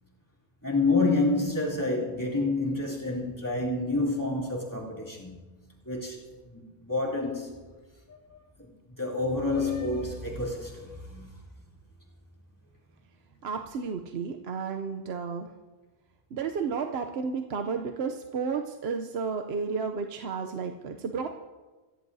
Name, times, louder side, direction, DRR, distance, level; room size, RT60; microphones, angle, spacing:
voice 1, 0.6-5.4 5.8-7.6 8.1-11.3, left 2 dB, 20° left, 3.0 m, -29 dB
voice 2, 13.4-15.5 16.3-21.3, right 5 dB, 85° right, 1.0 m, -32 dB
27.0 x 15.5 x 2.7 m
omnidirectional pair, 1.0 m